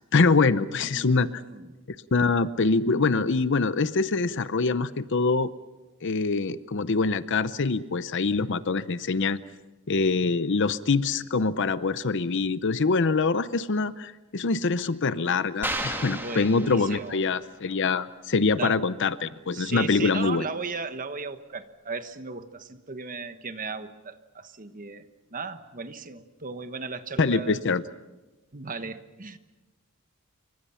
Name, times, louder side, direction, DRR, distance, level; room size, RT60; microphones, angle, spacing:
voice 1, 0.1-1.4 2.1-5.5 6.0-9.4 9.9-20.4 27.2-27.8, left 4 dB, 55° left, 14 dB, 0.7 m, -24 dB
voice 2, 0.8-1.8 16.1-17.2 18.6-18.7 19.5-27.6 28.5-29.4, right 4 dB, 40° right, 10 dB, 1.3 m, -36 dB
sound 1, 15.6-17.4, right 1 dB, 10° right, 2.6 m, -33 dB
28.5 x 24.5 x 5.7 m, 1.1 s
head